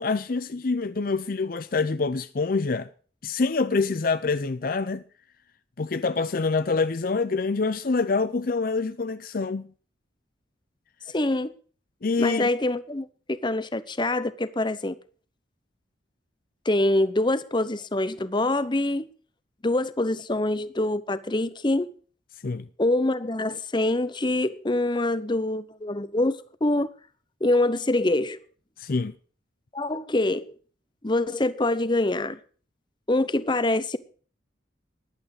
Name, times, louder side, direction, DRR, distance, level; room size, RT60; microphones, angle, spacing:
voice 1, 0.0-2.9 3.2-5.0 5.8-9.7 12.0-12.5 22.4-22.7 28.8-29.1, left 4 dB, 50° left, 0.5 m, -26 dB
voice 2, 11.1-11.5 12.2-15.0 16.6-19.1 19.6-21.9 22.8-26.9 27.4-28.4 29.7-30.5 31.0-32.4 33.1-34.0, left 2 dB, 25° left, 0.8 m, -25 dB
15.0 x 11.5 x 4.9 m
head